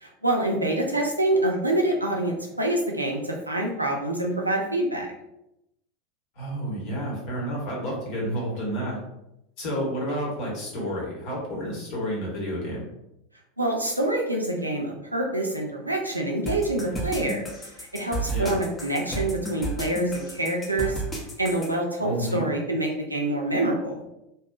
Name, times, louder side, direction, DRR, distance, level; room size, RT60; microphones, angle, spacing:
voice 1, 0.0-5.1 13.6-17.4 17.8-20.9 21.4-24.0, right 1 dB, 90° right, 0 dB, 0.4 m, -26 dB
voice 2, 6.4-9.0 9.6-12.9 18.3-18.6 22.0-22.5, equal, 50° left, -4 dB, 1.1 m, -30 dB
sound 1, 16.5-21.7, right 2 dB, 20° left, 0.6 m, -32 dB
2.7 x 2.3 x 2.3 m, 0.86 s
figure-of-eight pair, 85°, 0 cm